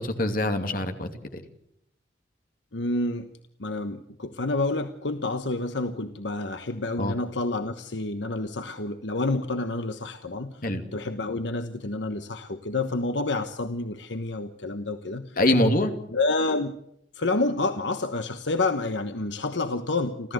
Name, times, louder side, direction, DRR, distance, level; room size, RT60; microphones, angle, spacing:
voice 1, 0.0-1.4 7.0-7.1 10.6-10.8 15.4-15.9, left 1 dB, 50° left, 6 dB, 2.7 m, -24 dB
voice 2, 2.7-3.3 3.6-10.6 10.9-15.4 16.1-16.8 17.1-20.3, left 2 dB, 75° left, 8 dB, 1.2 m, -29 dB
29.5 x 14.0 x 7.9 m, 0.75 s
head